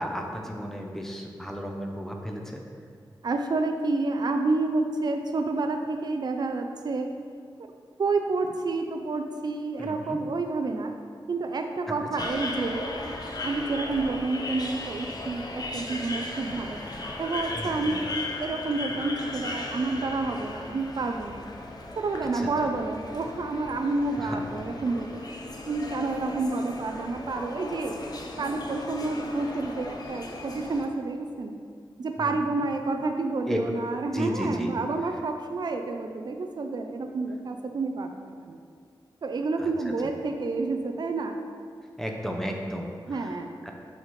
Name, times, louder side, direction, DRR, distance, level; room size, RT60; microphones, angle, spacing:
voice 1, 0.0-2.6 9.8-10.2 12.2-12.3 17.5-18.0 22.3-22.7 24.1-24.4 32.2-32.4 33.5-33.6 34.1-34.7 39.6-39.9 42.0-43.4 43.6-43.7, equal, 5° left, 1 dB, 0.7 m, -34 dB
voice 2, 3.2-7.1 8.0-10.9 11.3-16.8 17.2-18.0 18.4-21.5 22.0-25.2 25.7-28.1 28.4-31.6 32.0-38.6 39.2-41.4 43.1-43.7, right 3 dB, 55° right, 5 dB, 0.4 m, -29 dB
sound 1, 12.2-30.9, left 2 dB, 50° left, 0.7 m, -37 dB
8.0 x 4.1 x 3.2 m, 2.2 s
wide cardioid pair, 95°, 9 cm